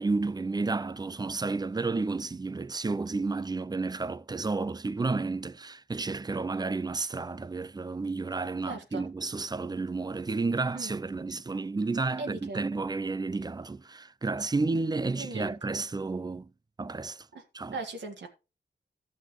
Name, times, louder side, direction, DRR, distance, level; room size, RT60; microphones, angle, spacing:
voice 1, 0.0-16.5 16.8-17.3 17.5-17.7, right 3 dB, 25° right, 0.4 m, -31 dB
voice 2, 8.7-9.0 10.7-10.9 12.2-12.6 15.2-15.6 17.3-17.4 17.7-18.3, right 3 dB, 90° right, 1.9 m, -38 dB
14.0 x 6.3 x 3.1 m
cardioid pair, 75°, 18 cm